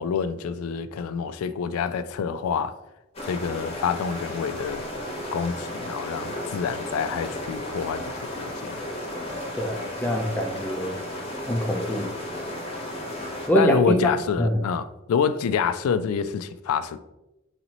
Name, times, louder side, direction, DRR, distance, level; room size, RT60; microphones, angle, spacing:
voice 1, 0.0-2.8 3.2-4.8 5.3-8.8 13.5-17.0, left 6 dB, 80° left, 0.3 m, -27 dB
sound 1, 3.1-13.5, left 1 dB, 30° left, 1.0 m, -34 dB
voice 2, 9.6-11.0 11.5-12.1 13.5-14.6, equal, 10° left, 0.5 m, -24 dB
4.0 x 3.9 x 2.9 m
head